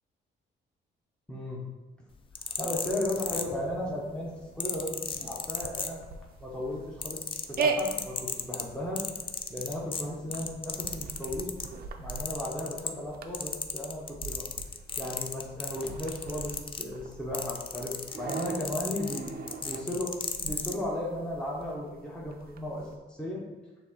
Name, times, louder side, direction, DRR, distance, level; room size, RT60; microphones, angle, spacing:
voice 1, 1.3-1.6 2.6-6.0 6.4-7.2 7.5-9.0 9.5-11.6 12.0-14.5 15.0-19.3 19.6-23.4, left 1 dB, 5° left, -4 dB, 0.8 m, -35 dB
sound 1, 2.2-3.9 4.6-6.3 6.7-11.7 12.1-13.1 13.3-20.8 21.5-21.7, left 5 dB, 25° left, 0.3 m, -35 dB
sound 2, 3.5-23.0, right 4 dB, 50° right, 0.5 m, -40 dB
6.2 x 2.7 x 2.9 m, 1.2 s
cardioid pair, 90°, 20 cm